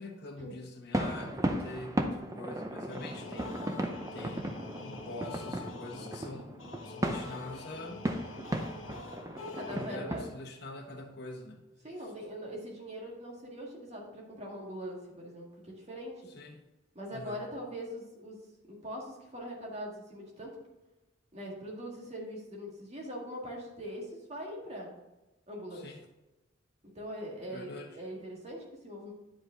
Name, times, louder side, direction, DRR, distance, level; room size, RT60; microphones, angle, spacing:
voice 1, 0.0-3.5 4.1-8.1 9.7-11.6 16.3-16.6 17.1-17.5 25.7-26.0 27.5-28.0, left 2 dB, 55° left, 1 dB, 1.1 m, -44 dB
sound 1, 0.9-10.3, right 1 dB, 15° right, 0.6 m, -36 dB
sound 2, 2.9-10.3, left 3 dB, 80° left, 1.0 m, -46 dB
voice 2, 9.4-10.2 11.8-16.3 16.9-18.4 18.7-20.6 21.3-24.9 25.5-25.9 26.9-29.1, equal, 35° right, -2 dB, 1.8 m, -42 dB
9.9 x 5.1 x 3.8 m, 1.1 s
head